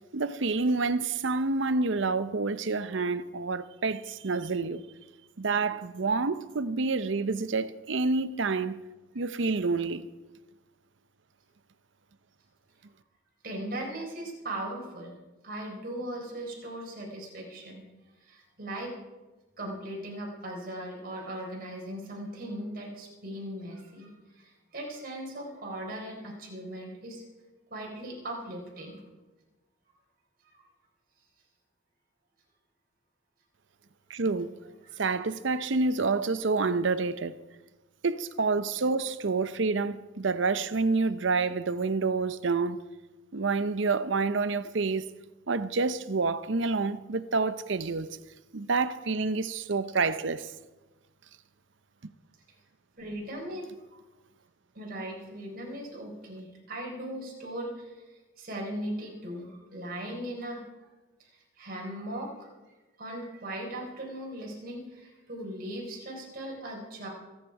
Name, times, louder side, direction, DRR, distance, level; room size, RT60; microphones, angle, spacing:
voice 1, 0.1-4.8 5.4-8.8 9.1-10.1 34.1-34.5 35.0-37.4 38.0-42.8 43.3-45.1 45.5-48.1 48.5-50.5 52.0-52.1, right 4 dB, 65° right, 0.7 m, -28 dB
voice 2, 13.4-15.1 15.4-17.9 18.2-18.9 19.6-27.2 27.7-29.0 30.5-30.6 34.8-35.0 53.0-54.0 54.7-60.6 61.3-62.5 63.0-67.1, right 1 dB, 45° right, 4.2 m, -38 dB
25.5 x 9.5 x 4.8 m
head